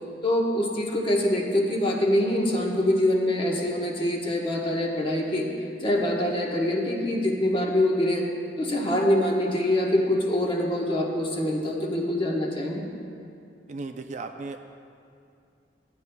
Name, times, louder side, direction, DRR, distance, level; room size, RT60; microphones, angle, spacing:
voice 1, 0.2-5.5 5.8-8.2 8.6-12.9, left 1 dB, 30° left, -1 dB, 1.1 m, -24 dB
voice 2, 13.7-14.6, right 3 dB, 40° right, 6 dB, 0.4 m, -35 dB
14.5 x 9.4 x 2.3 m, 2.4 s
head